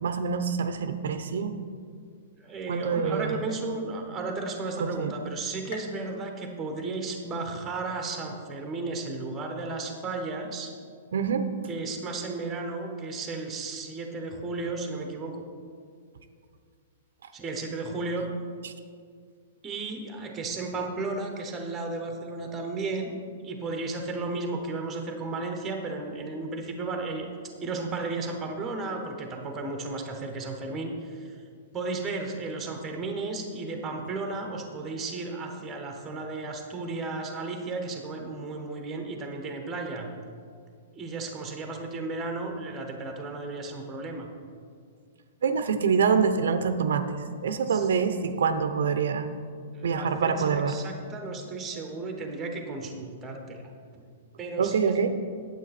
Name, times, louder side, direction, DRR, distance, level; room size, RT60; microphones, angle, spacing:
voice 1, 0.0-1.6 2.7-3.4 4.8-5.1 11.1-11.5 18.6-18.7 45.4-49.3 49.8-50.8 54.6-55.1, right 6 dB, 75° right, 9 dB, 0.6 m, -26 dB
voice 2, 2.4-10.7 11.7-15.4 17.3-18.3 19.6-23.2 23.4-27.3 27.6-31.4 31.7-40.1 40.9-44.3 47.7-47.9 49.7-53.6 54.4-54.9, right 3 dB, 10° right, 4 dB, 0.8 m, -34 dB
sound 1, 5.7-7.4 7.9-8.5 9.0-9.1 10.0-10.1, left 4 dB, 40° left, 1.0 m, -48 dB
9.2 x 8.2 x 4.1 m, 2.1 s
hypercardioid pair, 175°, 0 cm